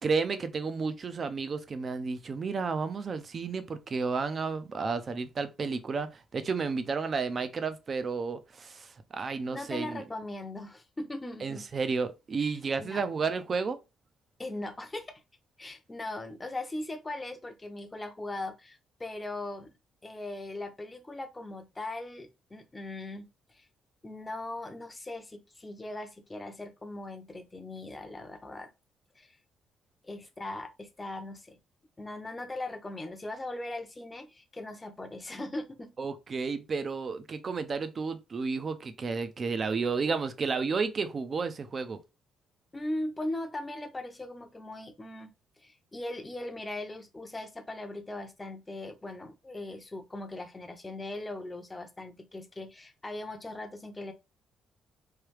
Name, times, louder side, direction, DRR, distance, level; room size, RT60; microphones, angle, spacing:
voice 1, 0.0-10.0 11.4-13.8 36.0-42.0, right 4 dB, 40° right, 0.5 m, -32 dB
voice 2, 9.2-11.7 12.4-13.1 14.4-15.2 15.6-19.7 20.0-23.7 24.0-28.7 29.2-29.4 30.0-31.6 32.0-35.9 42.7-45.3 45.6-54.1, left 2 dB, 20° left, 0.6 m, -39 dB
3.2 x 2.3 x 3.2 m
cardioid pair, 90°, 0 cm